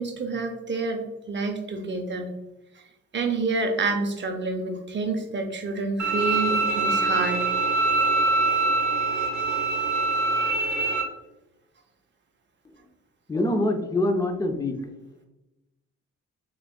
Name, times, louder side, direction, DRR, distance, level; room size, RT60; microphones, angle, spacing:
voice 1, 0.0-2.3 3.1-7.5, right 3 dB, 40° right, 5 dB, 0.6 m, -28 dB
Bowed string instrument, 6.0-11.0, right 3 dB, 70° right, 0.8 m, -24 dB
voice 2, 13.3-14.8, left 1 dB, 10° left, 5 dB, 0.5 m, -24 dB
6.9 x 2.4 x 2.2 m, 0.96 s
cardioid pair, 90°, 30 cm